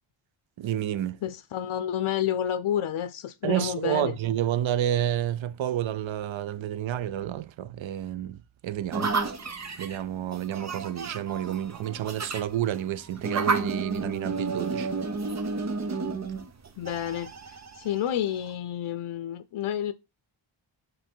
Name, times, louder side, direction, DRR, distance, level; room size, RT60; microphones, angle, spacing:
voice 1, 0.6-1.2 3.4-9.2 9.8-14.9, right 11 dB, 75° right, 0.6 m, -30 dB
voice 2, 1.2-4.2 16.8-19.9, left 10 dB, 85° left, 0.7 m, -30 dB
sound 1, 8.9-18.5, right 4 dB, 35° right, 0.9 m, -32 dB
7.9 x 3.9 x 4.5 m
wide cardioid pair, 165°, 47 cm